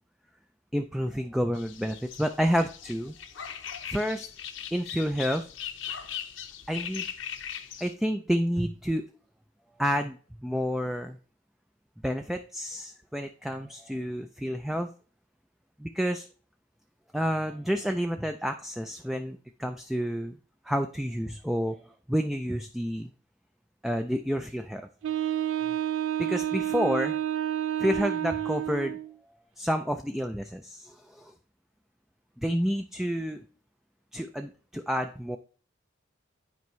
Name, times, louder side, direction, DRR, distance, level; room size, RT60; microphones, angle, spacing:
voice 1, 0.7-3.1 3.9-4.3 4.7-5.5 6.7-7.1 7.8-9.0 9.8-11.2 12.0-14.9 15.8-16.3 17.1-20.4 20.7-23.1 23.8-24.9 26.2-27.2 27.8-29.0 29.6-31.3 32.4-33.4 34.1-35.4, equal, ahead, 6 dB, 0.3 m, -29 dB
sound 1, 1.6-7.9, left 9 dB, 80° left, 0.7 m, -39 dB
Wind instrument woodwind instrument, 25.0-29.1, right 11 dB, 80° right, 0.3 m, -29 dB
9.5 x 4.5 x 3.1 m, 0.40 s
head